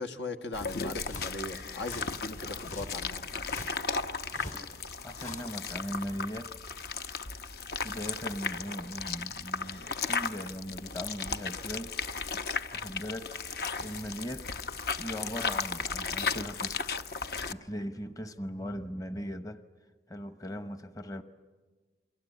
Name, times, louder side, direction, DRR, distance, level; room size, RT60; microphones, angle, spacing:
voice 1, 0.0-3.3, left 2 dB, 85° left, 7 dB, 1.5 m, -39 dB
sound 1, 0.5-17.5, left 5 dB, 60° left, 0.9 m, -35 dB
sound 2, 0.6-5.6, left 2 dB, 45° left, 2.4 m, -47 dB
voice 2, 5.0-6.8 7.8-12.0 12.7-14.5 15.0-16.8 17.2-19.6 20.1-21.2, equal, 20° left, 10 dB, 0.9 m, -39 dB
29.5 x 23.5 x 8.4 m, 1.3 s
head